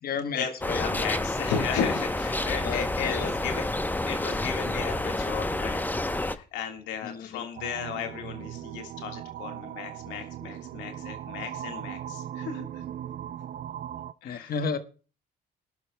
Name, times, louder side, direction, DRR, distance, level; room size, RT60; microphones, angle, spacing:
voice 1, 0.0-0.8 2.6-3.5 7.0-7.4 14.2-14.8, left 5 dB, 55° left, 10 dB, 1.2 m, -33 dB
sound 1, 0.6-6.4, left 2 dB, 10° left, 0.8 m, -29 dB
voice 2, 0.8-3.6 4.0-5.8 6.1-12.8 14.2-14.5, left 7 dB, 85° left, 4 dB, 1.7 m, -34 dB
sound 2, 7.6-14.1, right 11 dB, 50° right, 0.4 m, -38 dB
20.0 x 11.0 x 2.2 m, 0.36 s
supercardioid pair, 65°, 19 cm